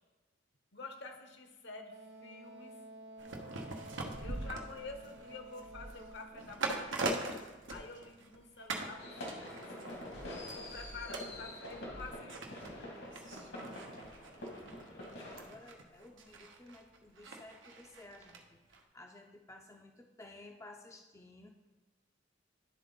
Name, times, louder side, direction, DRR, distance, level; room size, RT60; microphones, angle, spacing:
voice 1, 0.7-2.8 4.2-7.2 7.7-10.1 10.4-12.7, left 3 dB, 65° left, 5 dB, 0.9 m, -49 dB
Wind instrument woodwind instrument, 1.9-6.6, right 1 dB, 60° right, 0.6 m, -52 dB
sound 1, 3.2-8.4 8.7-9.0 9.3-18.4 18.7-18.8, right 2 dB, 85° right, 0.9 m, -43 dB
sound 2, 9.0-15.4, left 1 dB, 85° left, 2.3 m, -46 dB
voice 2, 13.5-21.5, left 2 dB, 15° left, 3 dB, 0.4 m, -56 dB
11.0 x 3.9 x 3.9 m, 1.2 s
head